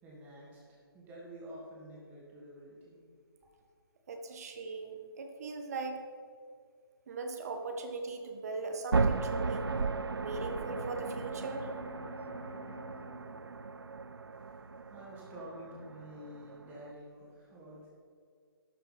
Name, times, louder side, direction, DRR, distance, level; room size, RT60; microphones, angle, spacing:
voice 1, 0.0-3.0 14.3-14.6 14.9-17.9, equal, 15° right, -5 dB, 2.9 m, -49 dB
voice 2, 4.1-6.0 7.1-9.7 10.1-11.7, right 3 dB, 40° right, 5 dB, 1.4 m, -39 dB
sound 1, 8.9-16.9, right 4 dB, 65° right, 0.6 m, -35 dB
Bowed string instrument, 9.2-15.2, left 7 dB, 10° left, 1.5 m, -53 dB
12.5 x 6.7 x 5.8 m, 2.2 s
figure-of-eight pair, 140°, 13 cm